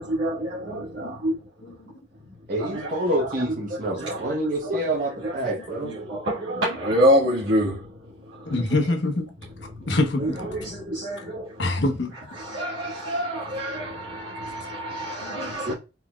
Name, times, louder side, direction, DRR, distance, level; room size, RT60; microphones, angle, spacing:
voice 1, 0.0-1.3 2.6-3.4 4.0-4.3 4.6-4.8 5.2-5.4 5.8-8.6 9.7-11.8 12.3-15.7, equal, 80° right, 1.4 m, -27 dB
voice 2, 0.7-1.4 1.7-1.9 8.4-9.3 9.9-10.4 11.6-12.1 15.2-15.7, left 2 dB, 75° left, 1.0 m, -26 dB
voice 3, 2.5-6.0 15.7-15.8, right 1 dB, 45° right, 0.9 m, -27 dB
4.4 x 4.2 x 2.3 m
head